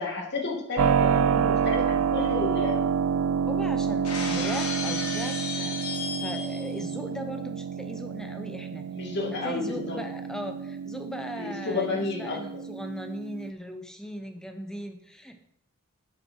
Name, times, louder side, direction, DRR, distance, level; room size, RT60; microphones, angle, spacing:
voice 1, 0.0-2.9 8.9-10.0 11.4-12.4, left 3 dB, 50° left, 0 dB, 2.6 m, -31 dB
Keyboard (musical), 0.8-13.5, right 7 dB, 70° right, 0.4 m, -28 dB
voice 2, 3.5-5.8 6.2-8.8 9.4-15.4, equal, 5° left, 5 dB, 0.9 m, -38 dB
Shatter, 4.0-6.8, left 5 dB, 85° left, 2.2 m, -34 dB
10.5 x 8.8 x 4.6 m, 0.77 s
head